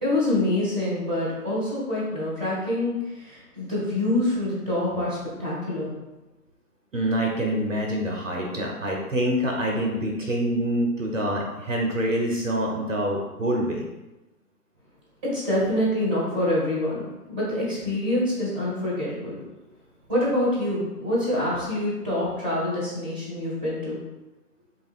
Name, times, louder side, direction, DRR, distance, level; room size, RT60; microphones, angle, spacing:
voice 1, 0.0-5.9 15.2-19.4 20.1-24.0, left 1 dB, 5° right, -9 dB, 0.8 m, -26 dB
voice 2, 6.9-13.9, equal, 55° right, 0 dB, 0.7 m, -26 dB
3.4 x 2.4 x 3.3 m, 1.0 s
figure-of-eight pair, 135°, 47 cm